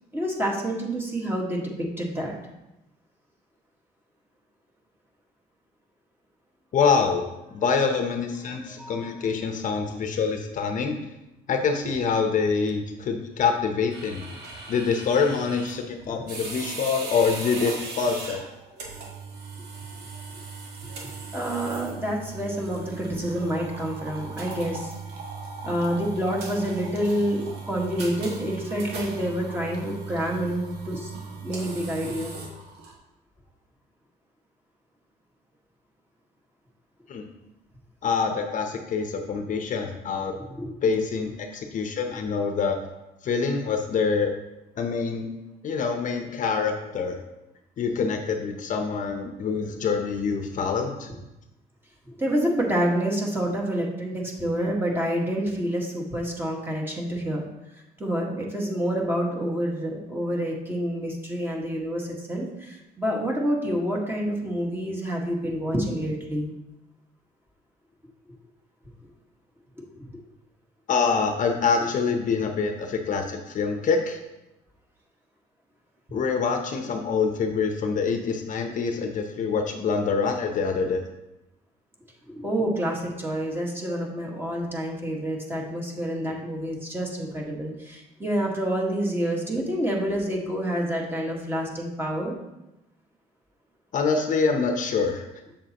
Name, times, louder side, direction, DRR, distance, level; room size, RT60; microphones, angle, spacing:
voice 1, 0.1-2.4 8.7-9.1 16.1-16.2 21.3-24.9 25.6-32.4 40.6-40.7 52.2-57.4 58.0-66.5 82.3-92.3, equal, 15° right, -2 dB, 1.6 m, -28 dB
voice 2, 6.7-7.2 7.5-11.0 11.5-14.2 14.7-18.4 37.1-37.3 38.0-40.3 40.8-42.8 43.2-44.3 44.8-45.3 45.6-47.2 47.8-51.1 70.9-74.2 76.1-81.0 93.9-95.3, left 5 dB, 50° left, 4 dB, 0.8 m, -25 dB
sound 1, 13.9-32.9, right 4 dB, 85° right, 1.6 m, -38 dB
7.4 x 7.1 x 3.0 m, 0.95 s
cardioid pair, 110°, 17 cm